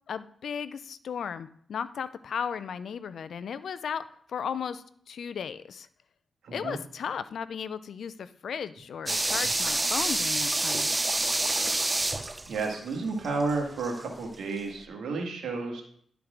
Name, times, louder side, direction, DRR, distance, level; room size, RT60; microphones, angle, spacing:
voice 1, 0.1-5.9 6.5-10.9, left 7 dB, 75° left, 14 dB, 0.4 m, -35 dB
voice 2, 6.4-6.8 12.5-15.8, right 3 dB, 85° right, 1 dB, 1.8 m, -31 dB
sound 1, 9.1-14.0 14.3-14.4, right 2 dB, 20° right, 0.5 m, -28 dB
11.0 x 4.6 x 3.8 m, 0.62 s
cardioid pair, 60°, 0 cm